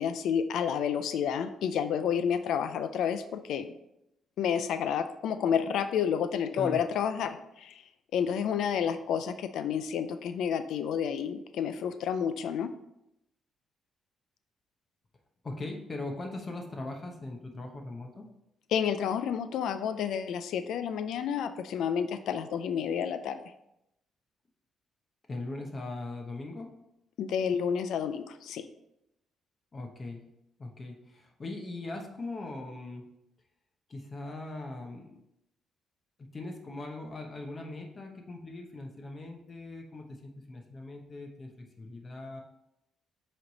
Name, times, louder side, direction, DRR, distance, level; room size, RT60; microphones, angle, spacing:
voice 1, 0.0-3.7 4.4-7.8 8.1-12.7 18.7-23.4 27.2-28.7, left 8 dB, 80° left, 10 dB, 0.3 m, -30 dB
voice 2, 15.4-18.2 25.3-26.7 29.7-30.2 30.6-33.1 33.9-35.2 36.3-42.4, left 2 dB, 35° left, 2 dB, 0.9 m, -40 dB
7.7 x 3.2 x 4.0 m, 0.83 s
cardioid pair, 90°, 0 cm